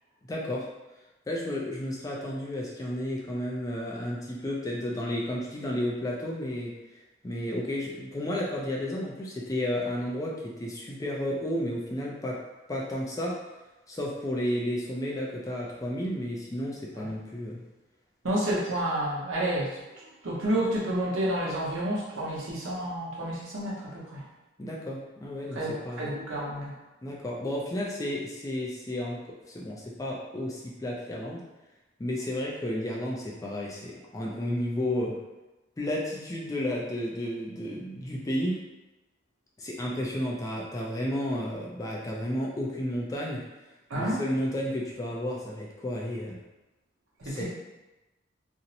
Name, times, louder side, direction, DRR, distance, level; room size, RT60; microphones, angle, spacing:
voice 1, 0.3-0.7 1.3-6.7 7.2-12.4 12.7-13.4 13.9-17.6 24.6-25.6 25.8-26.1 27.0-31.4 32.0-35.2 35.8-38.6 39.6-43.4 44.0-46.4 47.2-47.4, left 1 dB, 15° left, -3 dB, 0.3 m, -32 dB
voice 2, 18.2-24.2 25.5-26.7 43.9-44.2 47.2-47.4, right 1 dB, 85° right, -5 dB, 0.8 m, -30 dB
2.5 x 2.0 x 2.7 m, 1.1 s
head